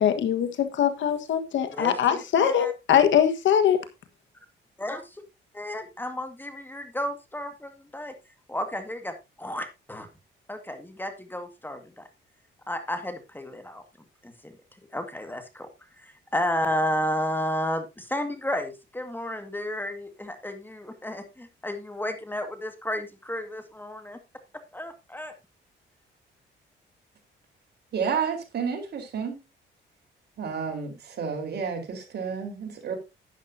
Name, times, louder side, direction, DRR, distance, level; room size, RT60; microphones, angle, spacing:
voice 1, 0.0-3.8, left 9 dB, 70° left, 1.5 m, -22 dB
voice 2, 1.7-2.7 4.8-5.2 5.5-8.1 8.5-10.1 10.5-12.1 12.7-13.8 14.2-14.5 14.9-15.7 16.0-24.2 24.7-25.3, left 1 dB, 10° left, 1.9 m, -32 dB
voice 3, 27.9-29.4 30.4-32.9, right 6 dB, 55° right, 4.2 m, -30 dB
11.5 x 10.0 x 2.7 m
cardioid pair, 90°, 20 cm